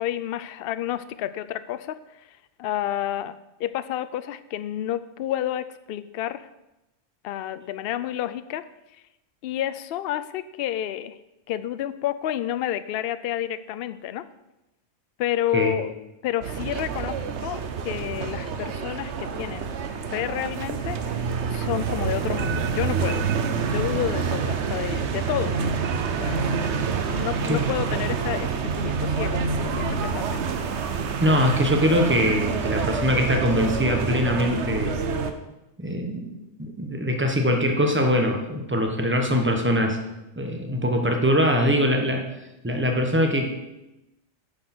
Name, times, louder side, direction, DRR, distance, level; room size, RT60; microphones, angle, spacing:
voice 1, 0.0-6.5 7.2-8.6 8.9-9.0 9.4-11.2 11.5-14.2 15.2-15.9 16.2-19.7 20.1-23.3 23.6-25.6 26.2-26.5 27.1-30.4, left 12 dB, 65° left, 13 dB, 0.7 m, -30 dB
sound 1, 16.4-35.3, right 5 dB, 70° right, 1.1 m, -27 dB
voice 2, 31.2-35.1 35.8-40.0 40.4-42.2 42.6-43.5, equal, 10° right, 3 dB, 1.2 m, -22 dB
9.7 x 6.6 x 6.1 m, 0.95 s
omnidirectional pair, 1.2 m